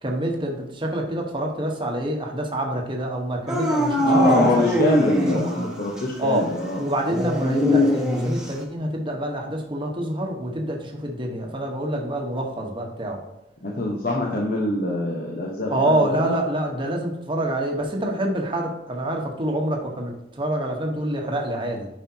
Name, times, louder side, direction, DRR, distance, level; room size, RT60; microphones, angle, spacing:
voice 1, 0.0-4.8 5.2-5.7 6.2-6.5 6.8-13.2 15.7-21.9, right 1 dB, 30° right, 1 dB, 1.2 m, -27 dB
Dog / Siren, 3.5-5.6 6.0-6.1 7.1-8.6, left 1 dB, 5° right, 1.3 m, -21 dB
voice 2, 4.0-6.8 13.6-16.4, left 1 dB, 55° left, -2 dB, 1.1 m, -24 dB
9.5 x 5.4 x 2.9 m, 0.94 s
head